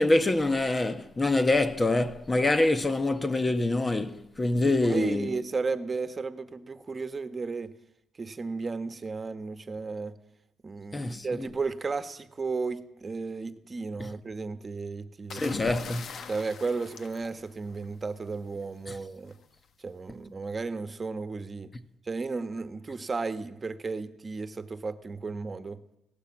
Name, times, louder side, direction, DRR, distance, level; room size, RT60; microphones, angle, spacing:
voice 1, 0.0-5.3 10.9-11.3 15.3-16.2 18.9-19.0, left 2 dB, 20° left, 1.3 m, -25 dB
voice 2, 4.7-7.7 8.2-10.2 10.6-15.5 16.3-19.4 19.8-21.7 22.0-25.8, right 4 dB, 30° right, 1.4 m, -34 dB
sound 1, 15.3-18.1 19.3-19.6, left 6 dB, 60° left, 1.6 m, -41 dB
18.5 x 17.0 x 8.7 m
cardioid pair, 90°, 0 cm